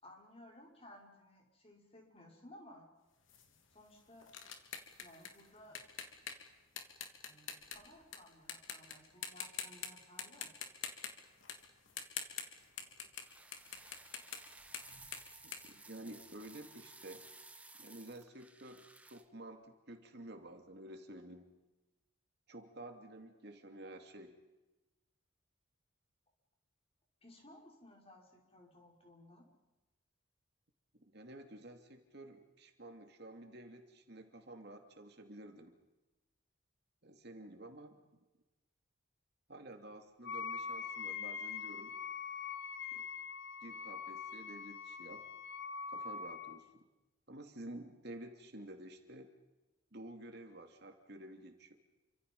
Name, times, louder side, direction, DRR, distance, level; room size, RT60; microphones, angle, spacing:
voice 1, 0.0-2.9 3.7-4.3 5.0-5.8 7.2-10.7 27.2-29.4, left 1 dB, 30° left, 0 dB, 5.5 m, -58 dB
sound 1, 3.3-8.2 8.5-8.9 9.2-9.9 10.2-16.5, left 7 dB, 80° left, 3.0 m, -45 dB
sound 2, 13.1-19.2, right 2 dB, 5° right, 1.1 m, -57 dB
voice 2, 15.4-17.3 17.8-21.5 22.5-24.3 30.9-35.8 37.0-38.0 39.5-42.0 42.9-43.1 43.6-45.3 45.9-46.9 47.3-49.3 49.9-51.7, right 1 dB, 55° right, 4 dB, 2.7 m, -51 dB
Wind instrument woodwind instrument, 40.2-46.6, left 6 dB, 55° left, 1.4 m, -43 dB
29.5 x 25.5 x 5.5 m, 1.1 s
head